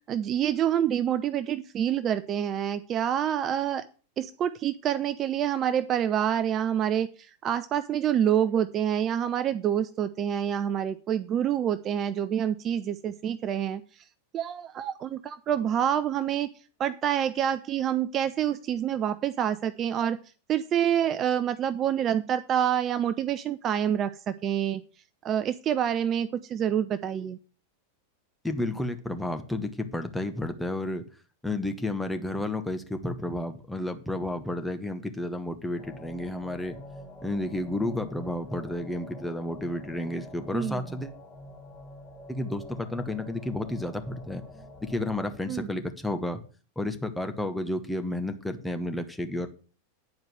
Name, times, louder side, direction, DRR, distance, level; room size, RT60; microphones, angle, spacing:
voice 1, 0.1-3.8 4.2-13.8 14.3-16.5 16.8-20.2 20.5-24.8 25.2-27.4 40.5-40.8 45.5-45.7, right 9 dB, 30° right, 12 dB, 0.5 m, -27 dB
voice 2, 28.4-31.0 31.4-36.8 37.2-41.1 42.3-44.4 44.8-46.4 46.8-49.5, left 1 dB, 5° left, 6 dB, 1.1 m, -31 dB
sound 1, 35.7-45.4, left 1 dB, 20° left, 3.1 m, -46 dB
9.5 x 4.8 x 7.6 m, 0.39 s
figure-of-eight pair, 90°, 0 cm